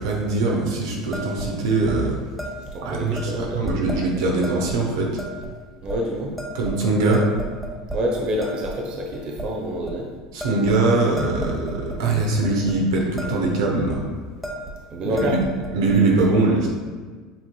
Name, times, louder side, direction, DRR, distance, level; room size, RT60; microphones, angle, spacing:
voice 1, 0.0-2.2 2.8-5.1 6.5-7.2 10.3-14.0 15.0-15.4 15.7-16.7, right 3 dB, 80° right, -1 dB, 0.8 m, -22 dB
sound 1, 1.1-1.5 1.8-2.0 2.4-2.7 3.1-4.0 4.4-4.8 5.2-5.5 5.9-6.0 6.4-6.8 7.1-8.0 8.4-8.8 9.1-9.5 9.8-10.0 10.4-12.0 12.4-12.7 13.0-13.5 13.8-14.0 14.4-14.8 15.0-16.0, right 1 dB, ahead, 1.0 m, -33 dB
voice 2, 2.7-3.7 5.8-6.3 7.9-10.1 14.9-15.4, equal, 45° right, 0 dB, 0.7 m, -27 dB
7.5 x 2.9 x 2.2 m, 1.5 s
hypercardioid pair, 85°, 2 cm